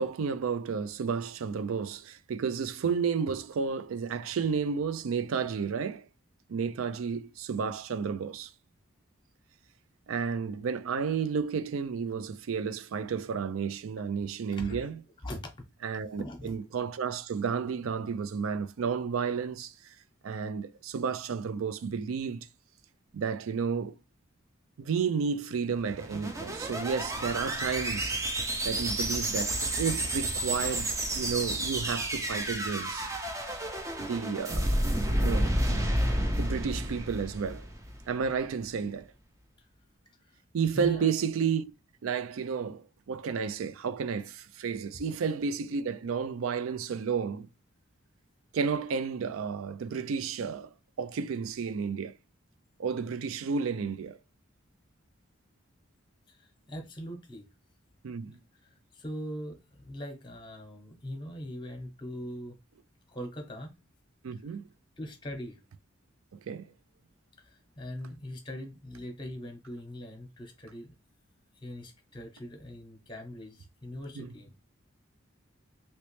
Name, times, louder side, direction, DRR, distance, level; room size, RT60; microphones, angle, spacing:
voice 1, 0.0-6.1 6.5-8.5 10.1-15.0 15.8-19.7 20.2-22.5 23.1-23.9 24.8-28.2 28.6-33.1 34.0-34.9 35.2-36.0 36.4-37.6 38.1-39.1 40.5-41.7 42.0-47.5 48.5-52.1 52.8-54.2 58.0-58.4 64.2-64.7 66.5-66.7 74.2-74.3, right 6 dB, 85° right, 0.4 m, -32 dB
voice 2, 14.6-14.9 15.2-15.4 16.2-16.6 40.7-41.1 56.3-57.5 58.6-62.6 63.1-63.7 65.0-65.6 67.4-70.9 71.6-74.5, equal, 25° left, 0.8 m, -41 dB
sound 1, 25.8-38.1, right 1 dB, 15° right, 0.5 m, -31 dB
3.1 x 3.0 x 3.1 m
head